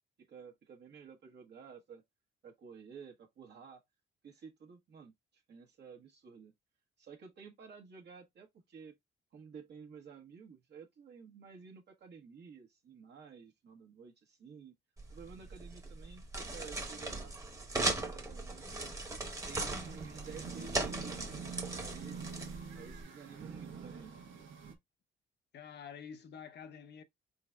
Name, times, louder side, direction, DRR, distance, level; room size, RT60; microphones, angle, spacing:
voice 1, 0.3-2.0 2.4-3.8 4.2-6.5 7.0-8.9 9.3-14.7 15.1-17.3 17.8-18.7 19.5-22.3 22.7-24.5, right 6 dB, 60° right, 1.1 m, -52 dB
sound 1, 15.0-23.0, right 2 dB, 15° right, 1.0 m, -39 dB
sound 2, 19.2-24.7, right 5 dB, 80° right, 1.0 m, -46 dB
voice 2, 25.5-27.0, left 7 dB, 60° left, 0.7 m, -48 dB
4.0 x 3.8 x 2.3 m
cardioid pair, 90°, 20 cm